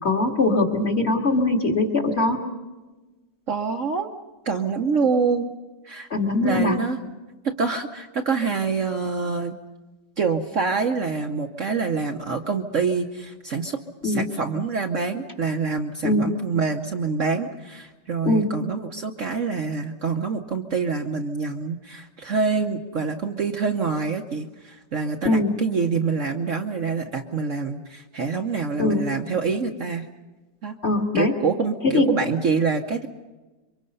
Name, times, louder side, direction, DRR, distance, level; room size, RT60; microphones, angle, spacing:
voice 1, 0.0-2.4 6.1-6.8 14.0-14.2 16.0-16.3 18.2-18.6 25.2-25.5 28.8-29.1 30.8-31.3 31.8-32.1, left 2 dB, 35° left, 2 dB, 2.2 m, -21 dB
voice 2, 3.5-4.1 4.4-5.5 5.8-6.1 6.4-7.0 7.4-9.5 10.2-30.1 30.6-30.8 31.1-33.1, right 5 dB, 50° right, 4 dB, 1.2 m, -26 dB
27.0 x 24.0 x 5.5 m, 1.2 s
omnidirectional pair, 1.9 m